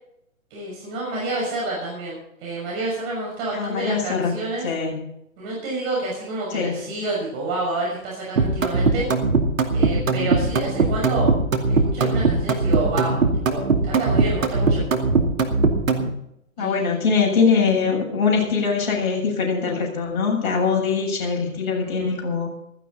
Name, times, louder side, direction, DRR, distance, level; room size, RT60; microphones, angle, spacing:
voice 1, 0.5-4.7 5.4-9.1 9.7-11.3 11.7-14.8 16.6-17.0 21.7-22.1, right 2 dB, 30° right, -4 dB, 6.4 m, -29 dB
voice 2, 3.5-4.4 4.6-5.0 6.5-6.9 16.6-22.5, left 5 dB, 35° left, -1 dB, 7.5 m, -22 dB
sound 1, 8.4-16.1, right 3 dB, 70° right, 2.5 m, -19 dB
15.5 x 15.0 x 4.2 m, 0.77 s
figure-of-eight pair, 125°, 41 cm